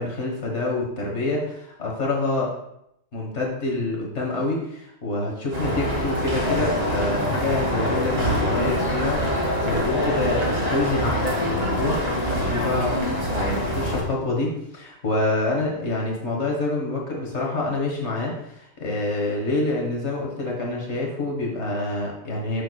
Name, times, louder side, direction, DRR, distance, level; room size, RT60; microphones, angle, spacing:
voice 1, 0.0-2.5 3.1-22.6, left 2 dB, 75° left, -2 dB, 1.7 m, -27 dB
sound 1, 5.5-14.0, equal, 35° right, 1.6 m, -24 dB
8.6 x 6.9 x 2.3 m, 0.77 s
omnidirectional pair, 1.2 m